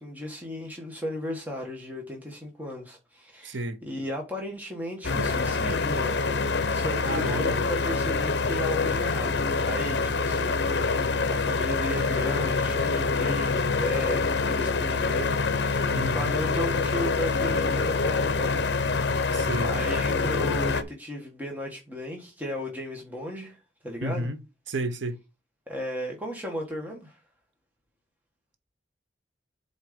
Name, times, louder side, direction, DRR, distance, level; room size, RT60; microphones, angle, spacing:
voice 1, 0.0-18.7 19.1-23.6 23.8-24.3 25.7-27.2, left 1 dB, 10° right, 1.5 m, -35 dB
voice 2, 3.4-3.8 7.0-7.6 15.9-16.4 19.3-19.7 24.0-24.4 24.7-25.2, right 1 dB, 80° right, 0.9 m, -31 dB
sound 1, 5.0-20.8, left 4 dB, 65° left, 0.8 m, -26 dB
7.8 x 4.1 x 5.1 m
head